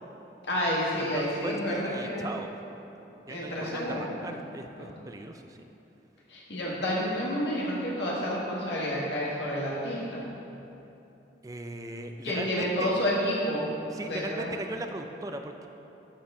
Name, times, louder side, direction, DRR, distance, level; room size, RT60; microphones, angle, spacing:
voice 1, 0.5-2.3 3.3-4.3 4.8-4.9 6.3-10.2 12.2-13.7 14.0-14.5, equal, 75° left, -5 dB, 1.7 m, -30 dB
voice 2, 1.0-2.5 3.3-5.6 11.4-12.9 13.9-15.7, right 2 dB, 20° right, 5 dB, 0.3 m, -38 dB
11.0 x 4.6 x 3.7 m, 3.0 s
head